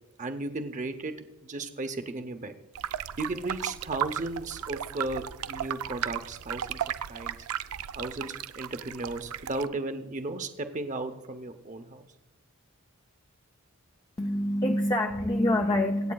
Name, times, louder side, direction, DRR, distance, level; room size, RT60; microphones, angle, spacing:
voice 1, 0.2-1.1 1.4-2.5 3.2-7.4 7.9-12.0, right 2 dB, 35° right, 8 dB, 0.7 m, -35 dB
sound 1, 2.7-9.7, right 10 dB, 80° right, 0.4 m, -35 dB
voice 2, 14.2-16.1, left 1 dB, 15° left, 3 dB, 0.4 m, -26 dB
25.5 x 8.5 x 2.3 m, 1.0 s
head